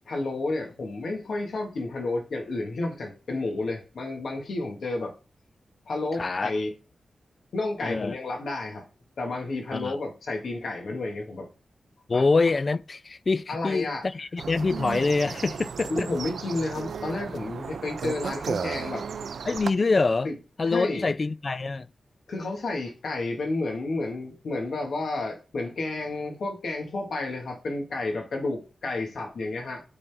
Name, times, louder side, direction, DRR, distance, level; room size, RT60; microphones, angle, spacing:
voice 1, 0.1-5.1 5.9-6.7 7.5-8.9 9.2-11.5 12.1-12.2 13.5-14.0 15.9-19.0 20.2-20.3 20.7-21.1 22.3-29.8, left 2 dB, 75° left, 1.8 m, -31 dB
voice 2, 6.1-6.5 7.8-8.1 9.7-10.0 12.1-16.1 19.5-20.3 20.6-21.9, left 3 dB, 40° left, 0.3 m, -25 dB
sound 1, 14.4-19.7, right 6 dB, 80° right, 0.3 m, -34 dB
8.6 x 4.1 x 3.5 m
wide cardioid pair, 90°, 0 cm